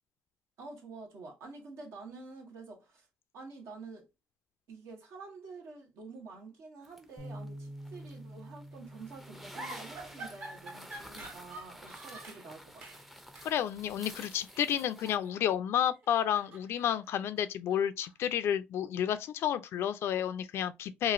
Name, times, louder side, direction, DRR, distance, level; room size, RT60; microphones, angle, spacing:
voice 1, 0.6-3.1 3.3-4.1 4.7-13.0, right 3 dB, 75° right, 1.1 m, -48 dB
sound 1, 6.8-15.2, equal, 5° right, 0.5 m, -51 dB
Bass guitar, 7.2-13.4, right 1 dB, 30° right, 1.1 m, -50 dB
sound 2, 9.5-12.5 12.8-13.1 13.3-13.5 14.5-15.6 15.9-18.3, right 2 dB, 55° right, 1.2 m, -47 dB
voice 2, 13.4-21.1, left 10 dB, 70° left, 0.3 m, -31 dB
3.0 x 2.5 x 2.4 m
cardioid pair, 90°, 4 cm